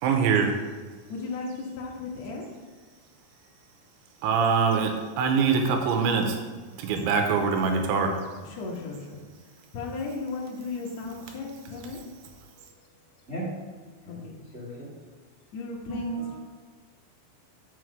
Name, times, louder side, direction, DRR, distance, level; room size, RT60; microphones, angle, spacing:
voice 1, 0.0-0.5 4.2-6.4 6.8-8.2, right 5 dB, 90° right, 3.2 m, -23 dB
voice 2, 1.1-2.6 8.4-12.1 13.9-14.4 15.5-16.4, left 3 dB, 60° left, 1.8 m, -36 dB
voice 3, 14.5-14.9 15.9-16.4, right 3 dB, 25° right, 1.6 m, -34 dB
6.1 x 6.1 x 6.4 m
omnidirectional pair, 5.2 m